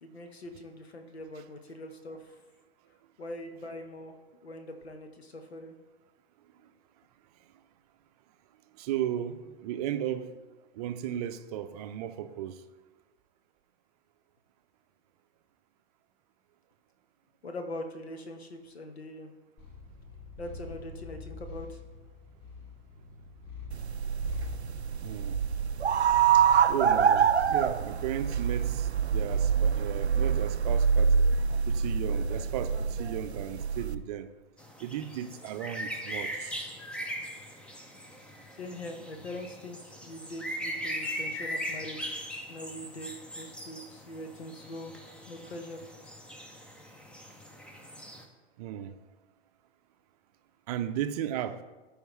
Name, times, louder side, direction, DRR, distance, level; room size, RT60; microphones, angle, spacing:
voice 1, 0.0-2.4 3.2-4.1 4.4-5.8 17.4-19.3 20.4-21.8 38.6-42.2 42.5-45.0 45.3-45.8, left 1 dB, 70° left, 1.2 m, -42 dB
voice 2, 8.7-10.4 10.7-12.6 25.0-25.4 26.3-31.1 31.7-34.3 34.8-36.6 48.6-48.9 50.7-51.6, right 10 dB, 35° right, 0.6 m, -35 dB
Purr, 19.6-26.5, left 3 dB, 35° left, 2.3 m, -45 dB
sound 1, 23.7-34.0, right 7 dB, 80° right, 0.5 m, -26 dB
sound 2, 34.6-48.2, equal, 5° left, 0.6 m, -40 dB
14.0 x 5.0 x 3.2 m
figure-of-eight pair, 105°, 32 cm